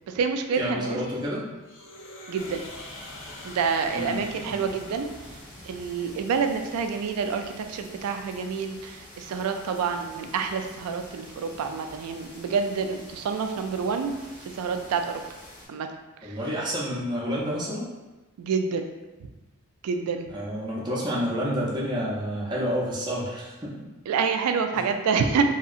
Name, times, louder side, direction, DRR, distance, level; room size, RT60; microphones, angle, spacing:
voice 1, 0.1-1.0 2.3-2.6 3.4-5.1 5.6-15.2 15.7-15.9 16.2-16.4 18.4-18.8 19.8-20.3 24.1-25.4, right 5 dB, 90° right, 6 dB, 0.3 m, -28 dB
voice 2, 0.6-1.4 3.9-4.2 4.4-4.6 16.2-17.9 20.3-23.7, equal, 20° right, -6 dB, 0.5 m, -29 dB
sound 1, 1.6-5.7, left 2 dB, 60° left, 0.4 m, -45 dB
sound 2, 2.3-15.7, left 1 dB, 85° left, 1.0 m, -47 dB
2.8 x 2.7 x 2.4 m, 1.1 s
head